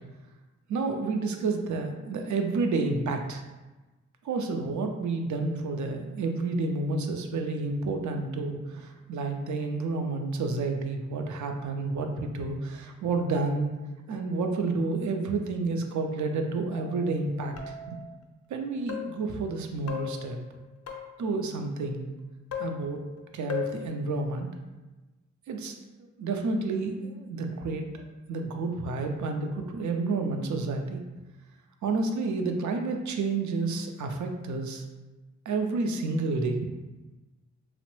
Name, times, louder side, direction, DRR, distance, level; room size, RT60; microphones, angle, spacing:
voice 1, 0.7-3.4 4.2-13.7 14.1-18.0 18.5-20.4 21.2-22.1 22.6-23.0 23.3-24.5 25.5-25.8 26.2-31.0 31.8-34.8 35.5-36.7, right 3 dB, 70° right, 4 dB, 0.4 m, -30 dB
sound 1, 16.7-17.1 17.6-18.1 18.9-19.3 19.9-21.3 22.5-23.2 23.5-23.9, left 8 dB, 55° left, 0.5 m, -37 dB
2.9 x 2.0 x 3.0 m, 1.1 s
cardioid pair, 70°, 31 cm